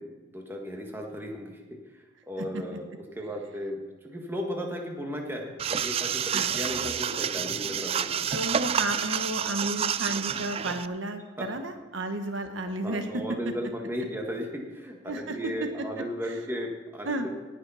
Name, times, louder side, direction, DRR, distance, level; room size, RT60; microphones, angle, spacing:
voice 1, 0.0-1.8 2.3-8.3 11.4-11.5 12.8-17.1, equal, 10° right, 1 dB, 1.5 m, -35 dB
sound 1, 5.6-10.9, right 8 dB, 30° right, 0.3 m, -29 dB
voice 2, 8.3-13.4 15.1-16.4 17.1-17.3, right 2 dB, 75° right, 6 dB, 1.1 m, -33 dB
19.0 x 6.6 x 5.6 m, 1.2 s
head